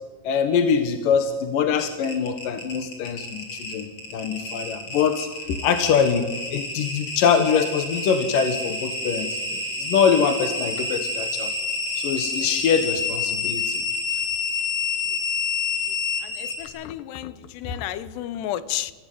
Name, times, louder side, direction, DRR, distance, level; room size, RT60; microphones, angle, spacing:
voice 1, 0.2-6.2 6.5-11.5 12.0-13.8 14.1-14.2 17.7-17.8, left 6 dB, 65° left, 8 dB, 2.7 m, -23 dB
sound 1, 1.7-16.6, left 3 dB, 35° left, 5.2 m, -28 dB
voice 2, 16.2-18.9, left 12 dB, 80° left, 15 dB, 3.0 m, -32 dB
29.5 x 16.0 x 9.3 m, 1.3 s
omnidirectional pair, 4.8 m